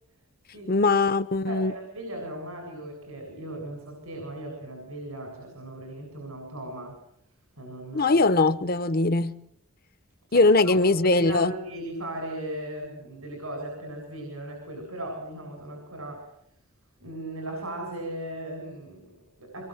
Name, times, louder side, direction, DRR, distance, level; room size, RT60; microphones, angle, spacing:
voice 1, 0.7-1.7 7.9-9.3 10.3-11.5, left 3 dB, 45° left, 11 dB, 0.9 m, -21 dB
voice 2, 1.4-7.0 7.6-8.2 10.3-16.3 17.0-19.7, right 1 dB, 85° right, 3 dB, 7.7 m, -37 dB
25.0 x 23.0 x 8.0 m, 0.73 s
head